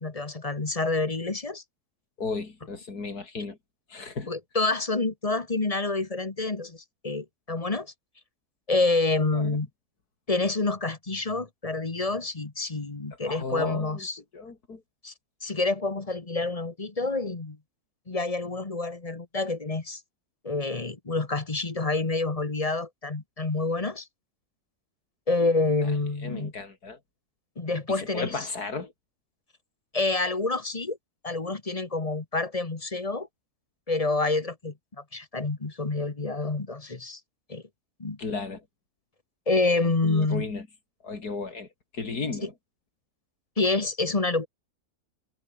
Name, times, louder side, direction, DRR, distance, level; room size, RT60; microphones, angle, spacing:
voice 1, 0.0-1.6 4.3-7.9 8.7-9.7 10.3-14.2 15.0-15.1 15.4-17.6 18.1-20.0 20.4-24.1 25.3-26.5 27.6-28.3 29.9-31.0 31.2-33.3 33.9-34.7 35.1-37.2 37.5-37.6 38.0-38.2 39.5-40.5 43.6-44.5, left 3 dB, 25° left, 1.4 m, -27 dB
voice 2, 2.2-3.6 3.9-4.3 9.3-9.6 13.2-14.1 14.3-14.8 26.2-27.0 27.9-28.9 38.2-38.6 40.0-40.7 41.0-41.7 41.9-42.5, left 4 dB, 80° left, 3.7 m, -34 dB
omnidirectional pair, 1.6 m